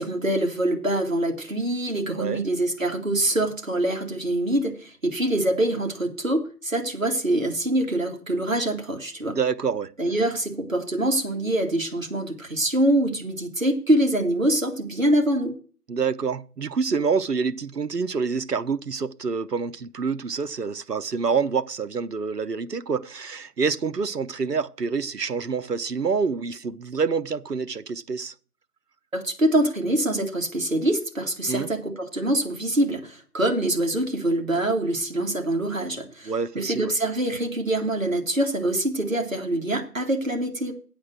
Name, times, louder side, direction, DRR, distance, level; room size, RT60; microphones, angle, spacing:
voice 1, 0.0-9.4 10.0-15.5 29.1-40.7, right 1 dB, 55° right, 2.3 m, -24 dB
voice 2, 9.3-9.9 15.9-28.3 31.5-31.7 36.3-36.9, right 5 dB, 85° right, 0.8 m, -27 dB
8.6 x 6.6 x 7.6 m
figure-of-eight pair, 170°, 47 cm